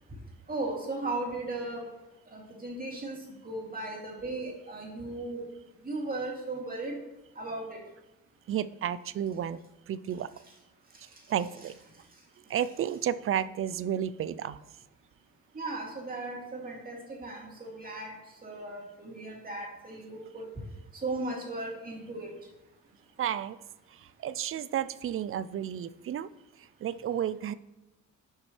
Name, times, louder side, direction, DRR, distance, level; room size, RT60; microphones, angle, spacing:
voice 1, 0.5-1.9 2.3-3.2 3.4-5.4 5.8-7.0 7.4-7.8 15.5-18.1 18.4-20.5 21.0-22.3, right 2 dB, 30° right, -1 dB, 2.6 m, -36 dB
voice 2, 8.5-9.6 9.9-10.3 11.3-11.8 12.5-14.6 23.2-23.6 24.2-26.3 26.8-27.5, right 10 dB, 45° right, 16 dB, 0.4 m, -31 dB
10.5 x 5.9 x 3.2 m, 0.99 s
cardioid pair, 90°, 30 cm